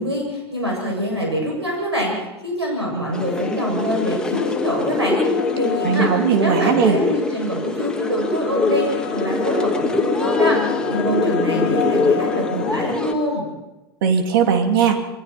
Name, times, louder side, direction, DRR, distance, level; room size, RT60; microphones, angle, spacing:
voice 1, 0.0-2.2 2.4-6.1 6.4-10.6 10.9-13.4, equal, 90° right, -1 dB, 7.3 m, -25 dB
sound 1, 3.1-13.1, left 3 dB, 5° left, 2.6 m, -23 dB
sound 2, 4.3-6.8 7.7-12.7, left 9 dB, 70° left, 1.3 m, -28 dB
voice 2, 5.8-7.0 14.0-15.0, right 7 dB, 60° right, 5 dB, 3.1 m, -18 dB
27.0 x 21.5 x 4.5 m, 1.0 s
figure-of-eight pair, 85°, 13 cm